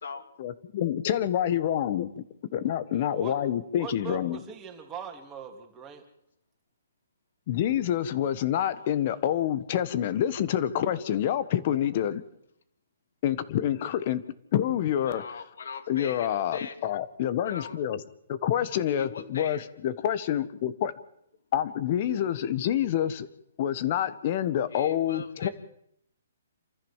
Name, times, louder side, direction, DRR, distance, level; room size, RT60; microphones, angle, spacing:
voice 1, 0.4-2.2 2.5-4.4 7.5-12.2 13.2-14.2 14.5-15.2 15.9-18.0 18.3-20.9 21.5-23.3 23.6-25.5, left 10 dB, 40° left, 1.3 m, -27 dB
voice 2, 2.9-3.3 3.8-6.0, right 7 dB, 15° right, 3.1 m, -41 dB
voice 3, 15.0-16.8 17.4-17.8 19.0-19.6 24.7-25.5, left 5 dB, 70° left, 2.7 m, -40 dB
27.5 x 14.0 x 7.4 m
hypercardioid pair, 160°, 0 cm